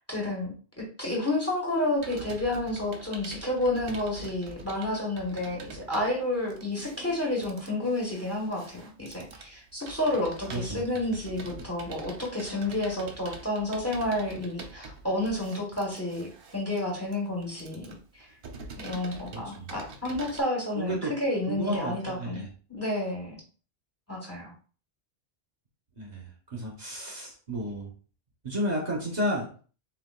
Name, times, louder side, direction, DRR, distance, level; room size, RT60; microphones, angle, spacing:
voice 1, 0.0-18.3 18.8-22.4 22.7-23.4 24.1-24.5, left 1 dB, 15° left, -2 dB, 1.2 m, -30 dB
Computer keyboard, 2.0-20.4, right 3 dB, 60° right, 0.9 m, -45 dB
voice 2, 10.5-10.8 19.3-19.7 20.8-21.1 21.5-22.5 26.0-27.9 28.4-29.5, equal, 45° right, -3 dB, 1.2 m, -32 dB
6.9 x 2.4 x 2.4 m, 0.39 s
omnidirectional pair, 1.1 m